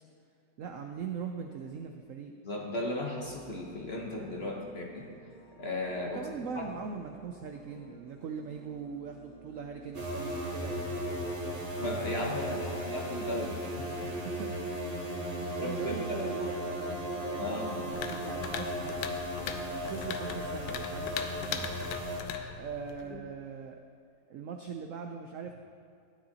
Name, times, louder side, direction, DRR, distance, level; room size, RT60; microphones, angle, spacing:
voice 1, 0.6-2.3 6.1-11.6 12.5-12.9 14.0-15.0 15.3-18.9 19.8-21.7 22.5-23.8 24.3-25.5, right 6 dB, 75° right, 4 dB, 0.7 m, -41 dB
voice 2, 2.4-5.1 5.6-6.2 11.8-13.9 15.6-16.2 17.4-17.8 22.3-22.6 23.1-23.2, left 1 dB, 45° left, 0 dB, 1.0 m, -36 dB
sound 1, 2.5-19.8, equal, 50° right, 3.4 m, -54 dB
sound 2, 9.9-22.2, equal, 30° right, 0.9 m, -36 dB
sound 3, 17.9-23.1, left 7 dB, 80° left, 1.3 m, -40 dB
13.5 x 9.6 x 2.8 m, 2.4 s
omnidirectional pair, 1.9 m